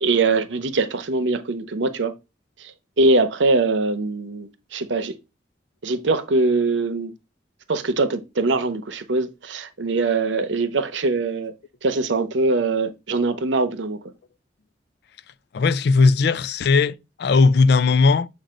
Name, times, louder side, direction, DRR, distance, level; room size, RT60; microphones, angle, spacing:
voice 1, 0.0-2.1 2.6-5.2 5.8-7.1 7.7-11.5 11.8-14.0, right 3 dB, 75° right, 0.7 m, -22 dB
voice 2, 15.5-18.3, left 4 dB, 60° left, 0.3 m, -17 dB
7.4 x 2.6 x 5.1 m
head